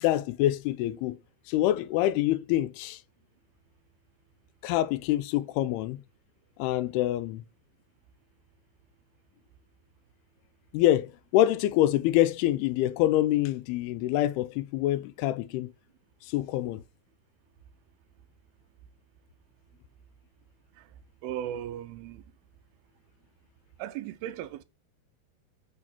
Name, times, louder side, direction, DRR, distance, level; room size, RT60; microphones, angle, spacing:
voice 1, 0.0-1.2 1.5-3.0 4.6-6.0 6.6-7.4 10.7-15.7 16.3-16.8, left 14 dB, 85° left, 2.5 m, -26 dB
voice 2, 21.2-22.2 23.8-24.6, right 11 dB, 80° right, 2.5 m, -36 dB
6.5 x 6.1 x 4.3 m
omnidirectional pair, 4.5 m